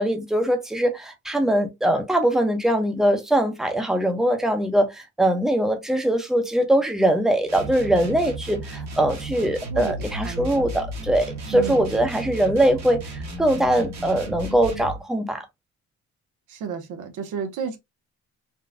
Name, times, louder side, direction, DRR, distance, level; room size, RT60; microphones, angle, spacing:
voice 1, 0.0-15.4, right 1 dB, ahead, 0.8 m, -22 dB
sound 1, 7.4-15.0, right 1 dB, 65° right, 1.4 m, -34 dB
voice 2, 9.7-10.7 11.5-11.9 16.5-17.8, right 6 dB, 80° right, 1.0 m, -32 dB
4.1 x 2.3 x 2.6 m
cardioid pair, 90°, 30 cm